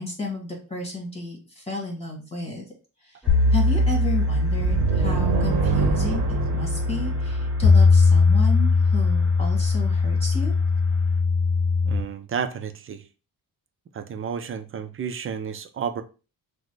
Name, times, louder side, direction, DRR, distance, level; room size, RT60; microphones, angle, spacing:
voice 1, 0.0-2.7 3.0-3.2 3.5-6.2 6.5-10.5, left 2 dB, 15° left, 0 dB, 1.7 m, -32 dB
sound 1, 3.2-11.2, equal, 5° right, 1.2 m, -37 dB
sound 2, 3.3-12.0, left 4 dB, 40° left, 0.6 m, -20 dB
sound 3, 4.6-8.2, right 6 dB, 80° right, 0.8 m, -26 dB
voice 2, 11.8-13.0 13.9-16.0, right 7 dB, 35° right, 8 dB, 0.4 m, -31 dB
6.1 x 2.1 x 3.1 m, 0.34 s
wide cardioid pair, 160°, 36 cm